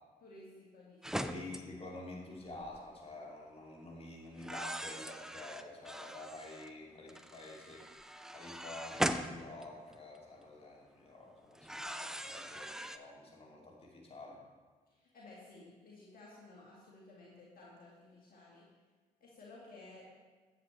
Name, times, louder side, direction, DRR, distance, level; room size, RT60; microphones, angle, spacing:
voice 1, 0.2-1.4 14.9-18.7 19.2-20.0, left 2 dB, 50° left, -5 dB, 1.9 m, -55 dB
sound 1, 1.0-1.6 2.5-2.8 4.4-6.7 7.1-10.2 11.5-13.0, equal, 5° right, 0.5 m, -40 dB
voice 2, 1.2-8.0 8.3-14.4, left 2 dB, 30° left, -3 dB, 2.4 m, -49 dB
9.7 x 7.9 x 3.2 m, 1.4 s
hypercardioid pair, 45°, 19 cm